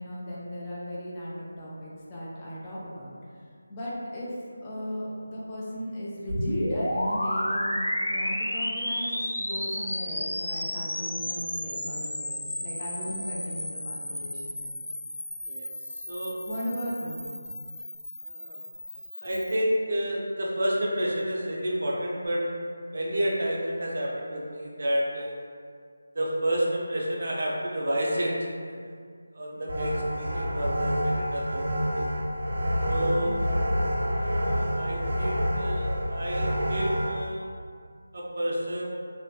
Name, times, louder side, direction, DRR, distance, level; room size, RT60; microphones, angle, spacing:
voice 1, 0.0-3.1 3.7-7.8 8.1-14.7 16.5-17.3 33.2-33.5, equal, 15° left, -8 dB, 0.3 m, -36 dB
sound 1, 6.3-19.6, left 1 dB, 70° left, 0.6 m, -32 dB
voice 2, 16.0-16.4 18.2-18.6 19.2-22.4 22.9-25.3 26.1-28.9 29.3-32.1 32.9-33.3 34.2-37.5 38.1-38.9, equal, 50° right, -3 dB, 0.5 m, -30 dB
sound 2, 29.7-37.1, equal, 80° right, 1.1 m, -28 dB
2.5 x 2.2 x 2.2 m, 2.1 s
figure-of-eight pair, 170°, 0 cm